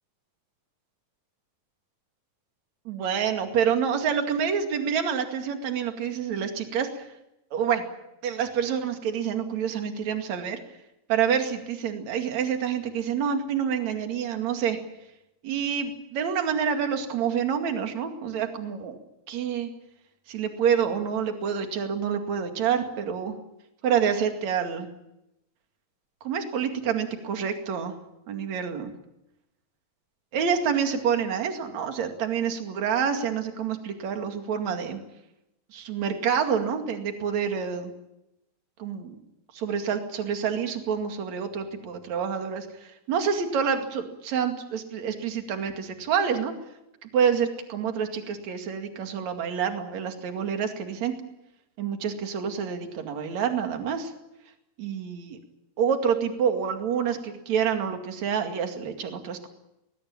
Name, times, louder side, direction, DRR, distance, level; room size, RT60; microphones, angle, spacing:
voice 1, 2.8-7.0 7.5-7.8 8.2-10.6 11.1-14.8 15.4-19.0 19.3-19.7 20.3-23.4 23.8-24.9 26.2-27.9 28.3-28.9 30.3-35.0 35.7-37.9 38.8-39.2 39.5-46.5 47.0-51.1 51.8-54.1 54.8-55.4 55.8-59.5, right 7 dB, 55° right, 5 dB, 3.4 m, -27 dB
20.5 x 20.5 x 8.9 m, 0.87 s
omnidirectional pair, 4.1 m